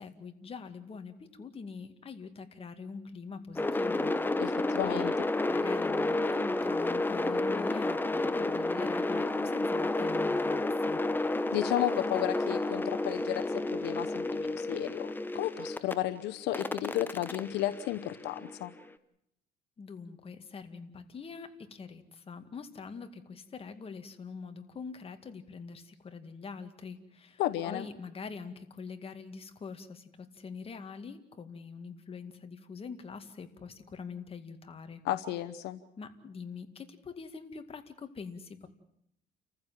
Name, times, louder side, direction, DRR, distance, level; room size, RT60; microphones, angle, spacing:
voice 1, 0.0-4.1 4.5-5.2 5.5-11.0 19.8-35.0 36.0-38.7, left 5 dB, 35° left, 7 dB, 2.1 m, -44 dB
sound 1, 3.6-15.9 16.5-18.7, left 2 dB, 10° left, 1.1 m, -31 dB
voice 2, 4.4-5.1 11.5-18.7 27.4-27.9 35.0-35.8, left 14 dB, 85° left, 12 dB, 0.9 m, -33 dB
29.5 x 15.0 x 7.5 m, 0.77 s
cardioid pair, 110°, 17 cm